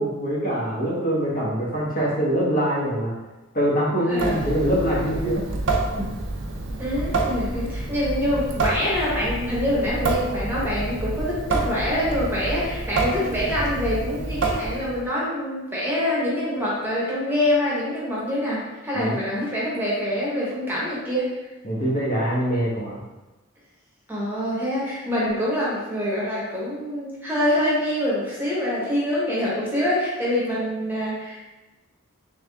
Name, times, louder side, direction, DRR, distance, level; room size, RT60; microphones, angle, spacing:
voice 1, 0.0-3.1 3.5-5.4 6.0-6.1 18.9-19.2 21.6-23.0, equal, 40° left, -6 dB, 1.1 m, -24 dB
voice 2, 4.1-4.4 6.8-21.3 24.1-31.4, left 1 dB, 10° right, -7 dB, 1.0 m, -25 dB
Water tap faucet / Sink (filling or washing) / Drip, 4.1-15.1, right 2 dB, 60° right, 0.6 m, -28 dB
3.6 x 3.5 x 3.3 m, 1.1 s
head